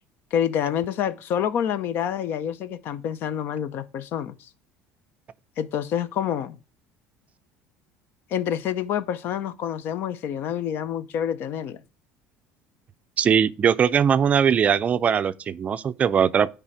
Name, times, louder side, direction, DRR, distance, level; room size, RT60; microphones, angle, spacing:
voice 1, 0.3-4.5 5.6-6.6 8.3-11.8, left 9 dB, 60° left, 0.7 m, -27 dB
voice 2, 13.2-16.5, right 7 dB, 35° right, 0.4 m, -20 dB
9.9 x 3.4 x 4.9 m
supercardioid pair, 105°, 4 cm